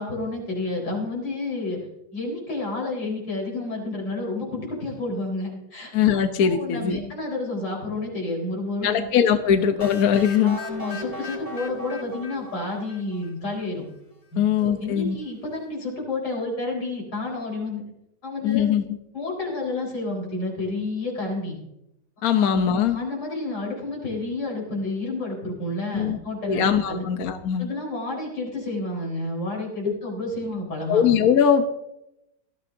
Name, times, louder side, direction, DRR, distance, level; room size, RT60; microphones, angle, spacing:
voice 1, 0.0-1.8 2.1-5.9 6.4-9.1 10.1-13.9 14.3-17.8 18.2-18.8 19.1-21.6 22.3-22.6 22.9-27.1 27.6-31.0, left 2 dB, 80° left, -2 dB, 5.0 m, -30 dB
voice 2, 5.9-7.0 8.8-10.6 14.4-15.2 18.4-18.8 22.2-23.0 25.9-26.2 26.5-27.7 29.8-29.9 30.9-31.7, left 8 dB, 60° left, 7 dB, 1.2 m, -21 dB
sound 1, 9.8-13.6, left 2 dB, 20° left, 1.9 m, -37 dB
19.0 x 13.5 x 2.7 m, 0.85 s
omnidirectional pair, 1.9 m